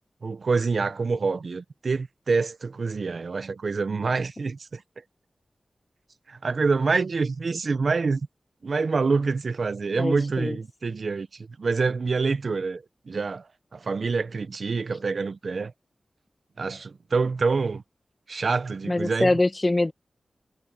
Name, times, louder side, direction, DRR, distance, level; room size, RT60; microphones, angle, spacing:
voice 1, 0.2-4.8 6.3-8.2 8.6-13.4 13.7-15.7 16.6-17.8 18.3-19.3, right 4 dB, 65° right, 0.7 m, -26 dB
voice 2, 10.0-10.6 18.9-19.9, left 2 dB, 30° left, 1.1 m, -24 dB
wide cardioid pair, 105°, 0 cm